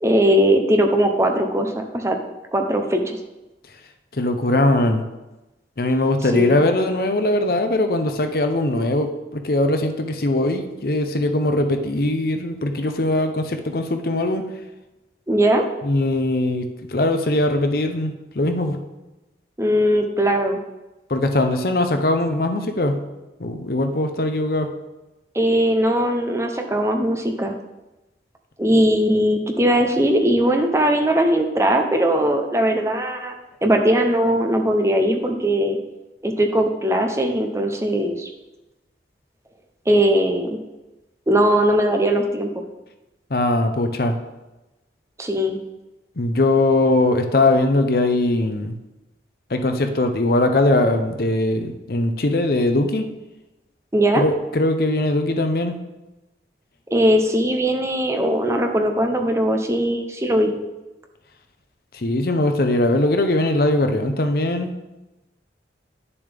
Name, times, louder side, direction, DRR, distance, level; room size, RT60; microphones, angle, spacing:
voice 1, 0.0-2.2 2.5-3.2 6.3-6.5 15.3-15.6 19.6-20.6 25.3-27.5 28.6-33.3 33.6-35.8 36.2-38.3 39.9-40.6 41.3-42.6 45.2-45.6 53.9-54.2 56.9-60.5, equal, 15° right, 4 dB, 0.7 m, -19 dB
voice 2, 4.1-5.0 5.8-14.4 15.8-18.8 21.1-23.0 23.4-24.7 43.3-44.2 46.2-48.8 49.5-53.1 54.2-55.8 61.9-64.7, left 2 dB, 55° left, 6 dB, 0.7 m, -20 dB
10.0 x 7.0 x 3.5 m, 1.0 s
head